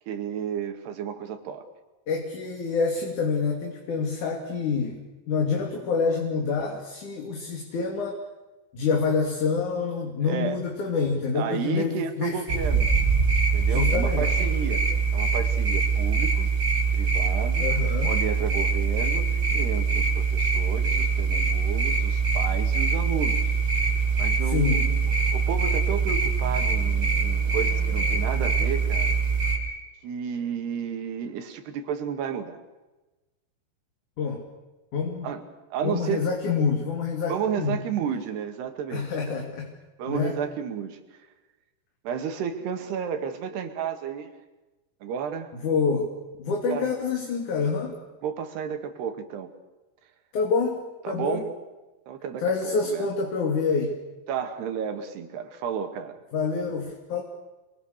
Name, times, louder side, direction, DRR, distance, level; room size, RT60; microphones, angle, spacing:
voice 1, 0.1-1.7 10.2-10.6 11.3-12.9 13.5-16.5 16.9-17.7 18.0-23.4 24.2-25.0 25.3-29.2 30.0-32.6 35.2-35.4 35.7-36.2 37.3-39.5 40.0-41.0 42.0-44.3 45.0-45.5 46.7-46.9 48.2-49.5 51.0-51.5 52.1-53.1 54.3-56.2, right 7 dB, 80° right, 7 dB, 4.2 m, -32 dB
voice 2, 2.1-8.2 8.7-12.4 13.7-14.4 17.6-18.1 24.5-24.9 34.2-34.4 34.9-35.3 35.8-37.8 38.9-39.7 40.1-40.4 45.6-46.1 46.4-48.0 50.3-51.4 52.4-54.0 56.3-57.2, left 5 dB, 50° left, 1 dB, 4.2 m, -27 dB
sound 1, 12.5-29.6, right 5 dB, 25° right, 6.7 m, -23 dB
29.5 x 23.5 x 6.7 m, 1.1 s
omnidirectional pair, 4.7 m